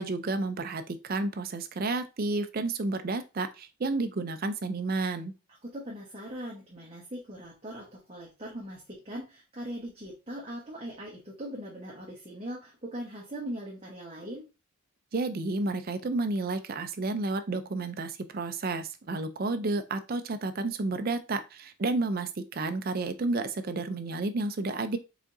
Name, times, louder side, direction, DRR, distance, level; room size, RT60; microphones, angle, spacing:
voice 1, 0.0-5.3 15.1-25.0, right 3 dB, 40° right, 9 dB, 0.4 m, -31 dB
voice 2, 5.6-14.5, equal, 25° right, -4 dB, 1.1 m, -40 dB
4.9 x 3.7 x 2.6 m, 0.28 s
head